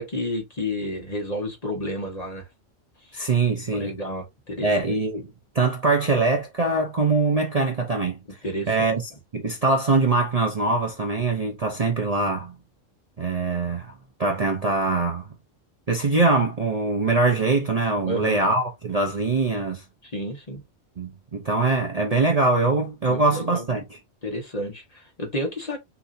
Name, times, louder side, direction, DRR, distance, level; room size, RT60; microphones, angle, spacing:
voice 1, 0.0-2.4 3.7-4.9 8.4-8.9 18.0-18.4 20.0-20.6 23.1-23.8 24.2-25.8, left 1 dB, 30° left, 1.4 m, -31 dB
voice 2, 3.1-4.0 4.6-8.2 8.7-9.0 9.3-12.5 13.2-13.9 14.2-15.3 15.9-19.8 21.0-23.8, right 3 dB, 35° right, 0.8 m, -23 dB
6.0 x 2.7 x 2.7 m
omnidirectional pair, 1.3 m